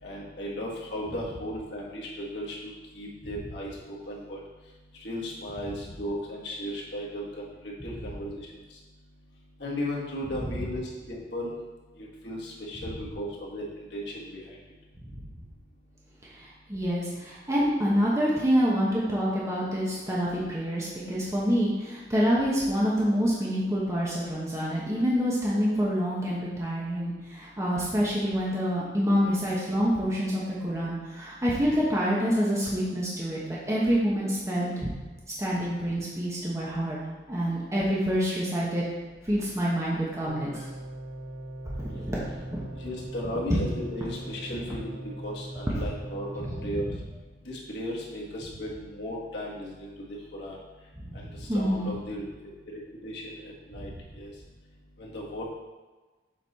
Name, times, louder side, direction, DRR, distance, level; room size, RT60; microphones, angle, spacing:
voice 1, 0.0-2.5 2.9-4.4 5.0-7.5 7.8-8.4 9.6-11.5 12.2-13.6 13.9-14.6 42.8-46.9 47.5-49.9 50.3-50.6 51.5-52.5 53.0-53.9 54.2-54.3 55.0-55.4, equal, 70° left, -4 dB, 1.6 m, -35 dB
voice 2, 16.2-34.9 35.3-37.0 37.3-38.8 39.2-40.6 41.8-42.7 45.7-45.8 46.4-46.9 51.0-51.9 53.7-53.9, equal, 15° right, -6 dB, 1.0 m, -27 dB
sound 1, 40.3-46.5, right 1 dB, 20° left, 1.7 m, -40 dB
7.4 x 4.1 x 4.1 m, 1.3 s
head